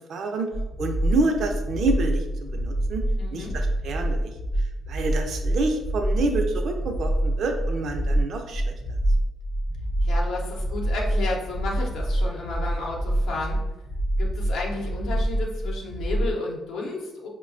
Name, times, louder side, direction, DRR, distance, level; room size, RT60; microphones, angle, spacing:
voice 1, 0.1-0.5 0.8-2.2 2.5-3.0 3.3-4.3 4.9-8.7, right 2 dB, 65° right, 4 dB, 0.5 m, -27 dB
sound 1, 0.5-16.4, right 1 dB, 40° left, 0.6 m, -26 dB
voice 2, 3.2-3.5 10.0-13.6 14.2-17.3, left 3 dB, 85° left, -2 dB, 0.7 m, -32 dB
4.7 x 2.2 x 2.5 m, 0.99 s
cardioid pair, 90°, 0 cm